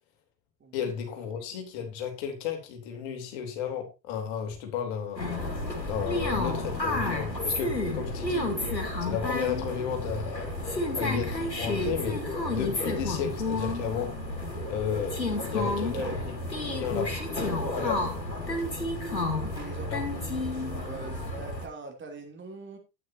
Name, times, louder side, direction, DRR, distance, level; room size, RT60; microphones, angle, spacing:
voice 1, 0.7-5.2 5.8-8.5 9.0-12.2 12.5-14.2 14.7-15.2 15.5-16.2 16.7-17.2 17.7-18.0 19.9-20.0, left 8 dB, 50° left, 3.3 m, -33 dB
sound 1, 5.1-21.7, left 2 dB, 85° left, 2.0 m, -31 dB
voice 2, 17.6-17.9 19.4-20.3 20.7-22.8, right 4 dB, 25° right, 3.0 m, -42 dB
12.0 x 9.4 x 2.8 m
figure-of-eight pair, 80°, 50 cm